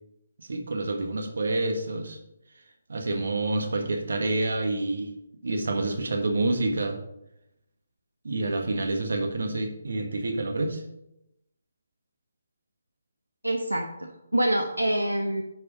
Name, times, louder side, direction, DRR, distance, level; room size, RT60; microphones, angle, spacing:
voice 1, 0.4-2.2 2.9-5.1 5.4-7.0 8.2-10.8, right 2 dB, 60° right, 4 dB, 1.6 m, -28 dB
voice 2, 13.4-15.4, right 1 dB, 85° right, 4 dB, 1.0 m, -26 dB
10.5 x 5.0 x 5.4 m, 0.84 s
figure-of-eight pair, 145°, 0 cm